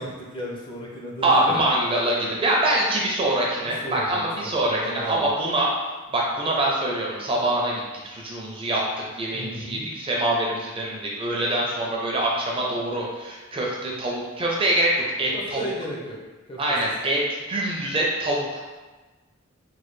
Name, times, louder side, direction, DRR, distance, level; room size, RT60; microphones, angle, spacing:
voice 1, 0.0-1.6 3.8-5.3 9.3-9.9 15.3-16.2 16.5-16.6, equal, 25° left, -3 dB, 0.5 m, -34 dB
voice 2, 1.2-5.7 6.1-8.9 9.1-15.6 16.6-17.2 17.5-18.6, right 1 dB, 25° right, -3 dB, 0.4 m, -24 dB
3.2 x 2.2 x 3.1 m, 1.2 s
head